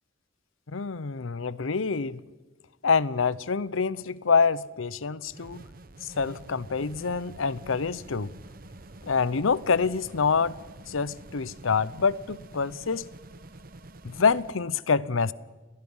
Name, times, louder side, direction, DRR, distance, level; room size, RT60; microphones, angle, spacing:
voice 1, 0.7-2.2 2.8-5.6 6.2-8.3 9.0-10.6 10.9-13.1 14.0-15.3, left 5 dB, 85° left, 0.7 m, -26 dB
sound 1, 5.3-14.6, right 2 dB, 45° right, 1.0 m, -47 dB
30.0 x 21.0 x 5.5 m
head